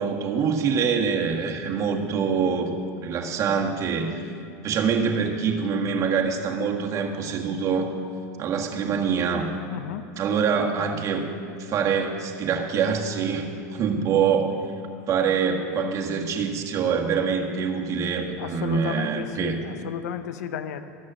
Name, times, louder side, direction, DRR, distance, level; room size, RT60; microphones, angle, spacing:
voice 1, 0.0-2.7 3.0-4.3 4.6-7.9 8.4-9.5 10.2-11.3 11.6-14.6 15.1-19.6, right 6 dB, 40° right, 2 dB, 1.6 m, -25 dB
voice 2, 9.7-10.1 18.4-20.8, left 9 dB, 85° left, 10 dB, 0.7 m, -32 dB
13.5 x 6.3 x 8.8 m, 2.4 s
supercardioid pair, 120°, 9 cm